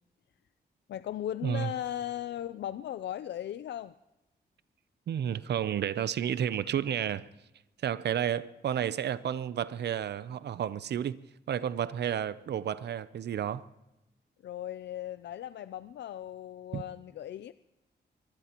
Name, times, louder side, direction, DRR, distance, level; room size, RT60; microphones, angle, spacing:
voice 1, 0.9-3.9 14.4-17.5, left 11 dB, 90° left, 0.4 m, -37 dB
voice 2, 5.1-7.3 7.8-11.2 11.5-13.7 16.7-16.8, right 9 dB, 75° right, 0.5 m, -31 dB
23.5 x 20.0 x 3.0 m
wide cardioid pair, 150°, 18 cm